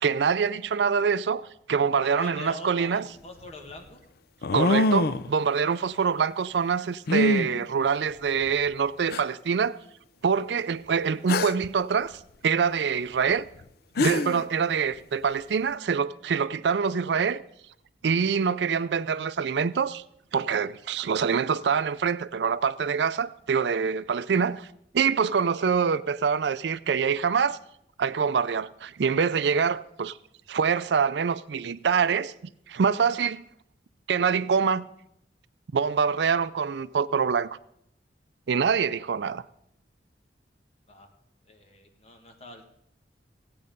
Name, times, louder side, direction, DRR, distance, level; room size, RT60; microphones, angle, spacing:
voice 1, 0.0-3.0 4.5-9.8 10.2-13.5 14.0-17.4 18.0-20.0 20.3-24.7 24.9-27.6 28.0-30.2 30.5-32.3 32.7-33.4 34.1-34.9 35.7-37.5 38.5-39.4, right 6 dB, 70° right, 0.4 m, -25 dB
voice 2, 2.0-4.0 40.9-41.1 41.5-42.6, left 1 dB, 35° left, 1.7 m, -43 dB
sound 1, 2.9-3.0 4.4-5.3 7.1-7.5 8.5-8.6 9.1-9.2 11.3-11.7 13.6-13.7 14.0-14.4, left 2 dB, 60° left, 0.5 m, -24 dB
16.0 x 8.5 x 5.3 m
head